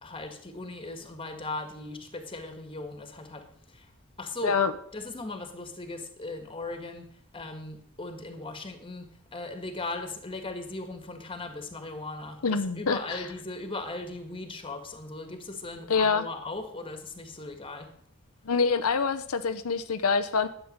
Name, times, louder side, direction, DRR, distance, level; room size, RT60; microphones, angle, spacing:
voice 1, 0.0-3.9 4.2-4.6 4.9-17.9, left 2 dB, 25° left, 7 dB, 1.8 m, -38 dB
voice 2, 12.4-13.2 15.9-16.2 18.5-20.5, left 5 dB, 90° left, 9 dB, 0.8 m, -25 dB
12.0 x 8.4 x 6.7 m, 0.64 s
head